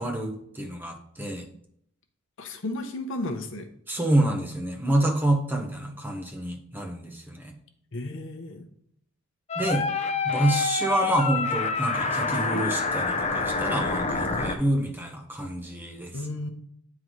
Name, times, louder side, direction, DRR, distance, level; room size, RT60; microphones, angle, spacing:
voice 1, 0.0-1.5 3.9-7.5 9.6-9.9 10.2-16.1, right 1 dB, 10° right, 2 dB, 0.8 m, -27 dB
voice 2, 2.4-3.7 7.9-8.7 16.1-16.5, left 2 dB, 60° left, 6 dB, 0.7 m, -33 dB
sound 1, 9.5-14.5, left 4 dB, 30° left, 0.6 m, -27 dB
9.5 x 3.8 x 3.1 m, 0.69 s
head